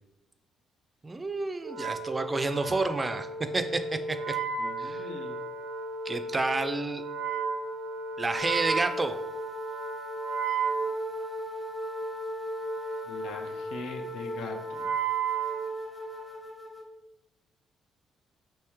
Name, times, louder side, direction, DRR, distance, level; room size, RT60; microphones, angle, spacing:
voice 1, 1.0-4.4 4.8-5.1 6.0-7.0 8.2-9.2, right 3 dB, 25° right, 9 dB, 0.3 m, -30 dB
Wind instrument woodwind instrument, 1.6-16.4, right 4 dB, 90° right, 0.6 m, -34 dB
voice 2, 4.6-5.4 13.1-14.9, left 3 dB, 85° left, 4 dB, 0.4 m, -41 dB
sound 1, 8.4-16.9, right 1 dB, 15° left, 0.6 m, -41 dB
3.1 x 2.9 x 3.5 m, 0.94 s
cardioid pair, 90°, 0 cm